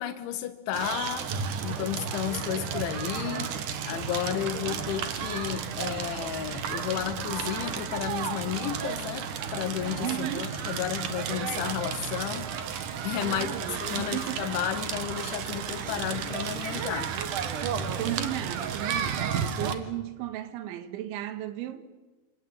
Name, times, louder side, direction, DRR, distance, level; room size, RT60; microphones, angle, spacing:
voice 1, 0.0-1.3 1.6-3.5 3.8-13.5 13.8-17.1, left 11 dB, 80° left, 3.5 m, -33 dB
Crackle, 0.7-19.7, right 7 dB, 60° right, 2.2 m, -33 dB
voice 2, 10.0-10.6 13.2-14.4 18.0-21.9, right 12 dB, 80° right, 3.8 m, -35 dB
26.5 x 24.5 x 8.8 m
omnidirectional pair, 5.5 m